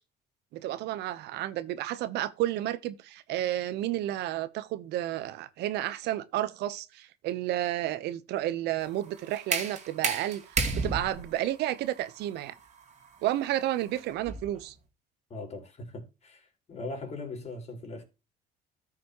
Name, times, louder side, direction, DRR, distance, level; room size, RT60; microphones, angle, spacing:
voice 1, 0.5-12.5 13.2-14.7, right 13 dB, 80° right, 0.9 m, -31 dB
sound 1, 8.8-14.6, right 4 dB, 45° right, 2.4 m, -34 dB
voice 2, 15.3-18.0, left 2 dB, 40° left, 4.2 m, -40 dB
14.0 x 6.1 x 3.0 m
cardioid pair, 110°, 17 cm